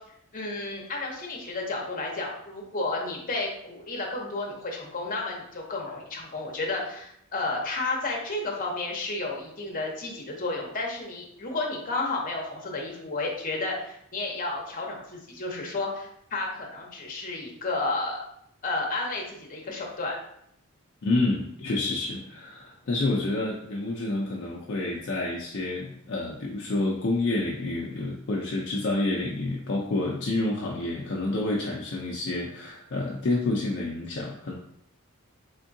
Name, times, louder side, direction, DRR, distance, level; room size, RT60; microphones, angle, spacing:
voice 1, 0.3-18.2 18.6-20.2, left 2 dB, 40° left, 0 dB, 0.8 m, -32 dB
voice 2, 21.0-34.5, left 2 dB, 55° left, -2 dB, 0.5 m, -28 dB
3.6 x 3.5 x 2.6 m, 0.71 s
head